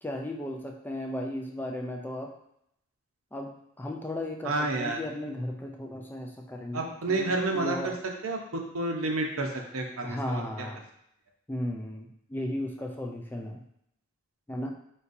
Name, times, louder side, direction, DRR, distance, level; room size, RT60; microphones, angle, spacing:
voice 1, 0.0-2.3 3.3-7.9 10.0-10.8 11.5-13.6 14.5-14.7, left 1 dB, 10° left, 2 dB, 0.3 m, -35 dB
voice 2, 4.4-5.0 6.7-7.9 8.2-10.7, right 2 dB, 70° right, 2 dB, 0.7 m, -30 dB
3.9 x 3.9 x 2.6 m, 0.75 s
head